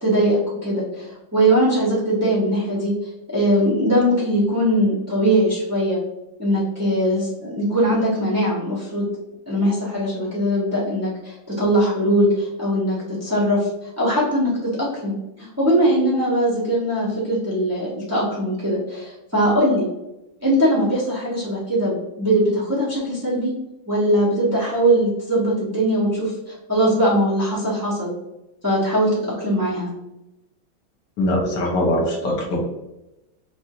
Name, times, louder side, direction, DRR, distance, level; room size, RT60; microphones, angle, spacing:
voice 1, 0.0-6.0 6.4-9.1 9.5-19.9 20.4-23.5 23.9-28.1 28.6-29.9, right 1 dB, 20° right, -9 dB, 0.4 m, -21 dB
voice 2, 31.2-32.6, left 1 dB, 65° left, 0 dB, 1.4 m, -21 dB
5.2 x 2.4 x 2.9 m, 0.94 s
omnidirectional pair, 2.2 m